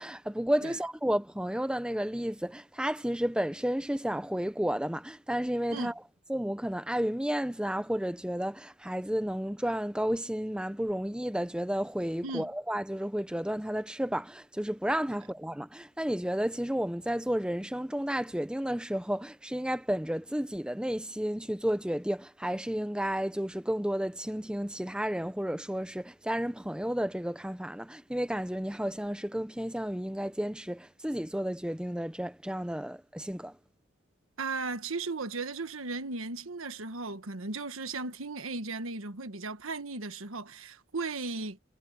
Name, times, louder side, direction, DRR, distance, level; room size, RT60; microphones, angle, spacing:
voice 1, 0.0-5.9 6.3-33.6, equal, 5° right, 0.7 m, -32 dB
voice 2, 34.4-41.6, right 3 dB, 85° right, 1.4 m, -36 dB
head